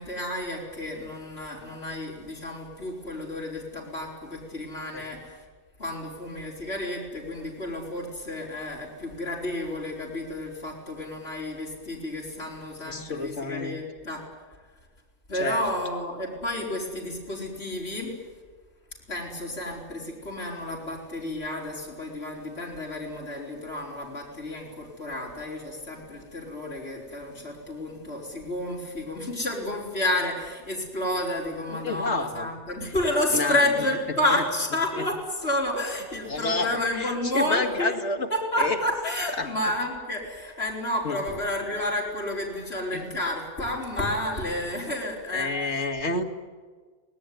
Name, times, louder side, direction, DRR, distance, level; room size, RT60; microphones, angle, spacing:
voice 1, 0.0-5.5 5.8-14.3 15.3-18.2 19.1-37.9 38.3-45.7, left 1 dB, 70° left, -3 dB, 5.2 m, -30 dB
voice 2, 12.9-13.8 15.4-15.6 31.7-32.5 33.3-33.6 34.3-34.4 35.0-35.1 36.3-38.3 38.6-38.8 39.4-39.5 41.0-41.2 42.9-43.0 45.3-46.2, left 3 dB, 85° left, 5 dB, 2.4 m, -29 dB
25.0 x 19.5 x 9.6 m, 1.5 s
omnidirectional pair, 1.1 m